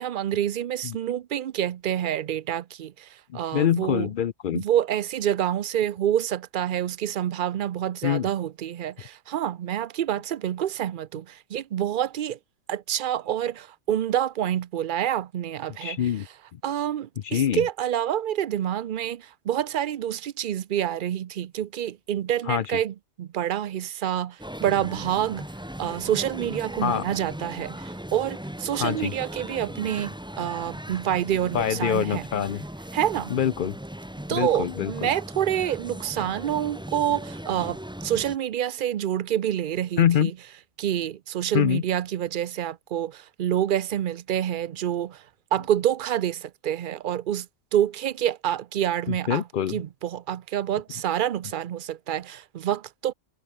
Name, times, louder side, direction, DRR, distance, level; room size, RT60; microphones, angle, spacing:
voice 1, 0.0-4.1 4.5-12.4 12.7-16.0 16.6-25.5 25.8-32.2 32.9-33.3 34.3-40.3 40.8-45.2 45.5-47.5 47.7-49.4 49.7-53.1, right 10 dB, 60° right, 0.5 m, -27 dB
voice 2, 3.3-4.6 8.0-8.3 15.8-16.3 16.5-16.6 17.2-17.7 22.5-22.6 26.8-27.0 28.8-29.1 31.5-32.6 33.3-33.7 34.3-35.1 40.0-40.3 41.5-41.8 49.1-49.8, left 9 dB, 60° left, 0.5 m, -25 dB
sound 1, 24.4-38.4, equal, 5° right, 1.3 m, -38 dB
omnidirectional pair, 1.4 m